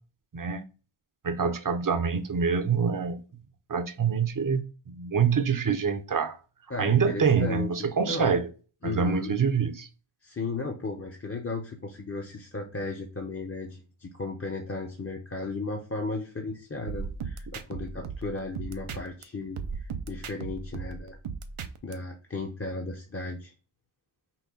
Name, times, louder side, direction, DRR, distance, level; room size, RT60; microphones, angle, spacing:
voice 1, 1.2-3.2 3.7-6.4 6.8-8.5 8.8-9.9, right 6 dB, 40° right, 0.6 m, -26 dB
voice 2, 6.7-7.7 8.0-8.3 8.8-9.3 10.2-21.2 21.8-23.5, left 3 dB, 25° left, 0.8 m, -35 dB
sound 1, 16.9-19.2 19.6-21.9, right 5 dB, 90° right, 0.7 m, -37 dB
5.8 x 2.2 x 3.9 m
wide cardioid pair, 60°, 49 cm